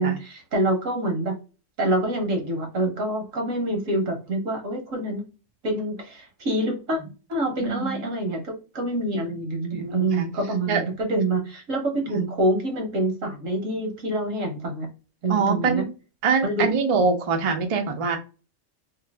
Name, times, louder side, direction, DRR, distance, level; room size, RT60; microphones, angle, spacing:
voice 1, 0.0-1.3 1.8-5.2 5.6-7.0 7.3-14.9 15.2-15.8 16.4-16.7, right 1 dB, 80° right, 2 dB, 1.6 m, -26 dB
voice 2, 7.6-8.0 9.7-10.3 10.7-10.8 12.1-12.2 15.3-15.9 16.2-18.2, right 4 dB, 40° right, 5 dB, 0.5 m, -24 dB
3.2 x 2.8 x 3.3 m, 0.33 s
omnidirectional pair, 1.3 m